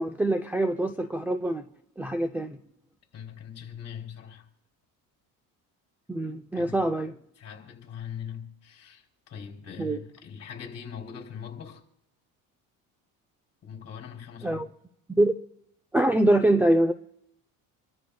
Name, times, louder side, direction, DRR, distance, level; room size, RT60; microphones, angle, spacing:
voice 1, 0.0-1.6 2.0-2.6 6.1-7.1 9.8-10.0 14.4-14.7 15.1-15.3 15.9-16.9, right 1 dB, 5° right, 0.5 m, -24 dB
voice 2, 3.1-4.5 6.5-6.9 7.4-11.8 13.6-14.6, left 7 dB, 40° left, 3.3 m, -41 dB
27.5 x 13.0 x 2.3 m
cardioid pair, 110°, 38 cm